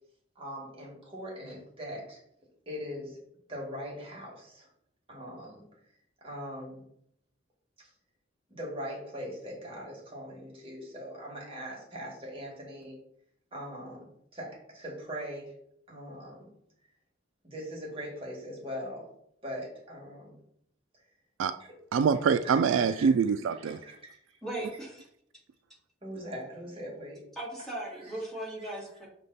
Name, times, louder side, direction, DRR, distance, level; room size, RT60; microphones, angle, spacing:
voice 1, 0.4-2.2 2.7-3.2 3.5-4.7 5.1-5.6 6.2-6.8 8.5-13.0 13.5-14.0 14.3-14.5 14.7-15.5 15.9-16.5 17.4-19.0 19.4-20.3 22.4-23.1 23.7-24.2 26.0-27.2, equal, 30° right, 2.0 m, -41 dB
voice 2, 21.9-23.8, right 6 dB, 75° right, 0.3 m, -25 dB
voice 3, 24.4-25.1 27.4-29.1, right 1 dB, ahead, 2.3 m, -37 dB
6.5 x 3.5 x 4.1 m
head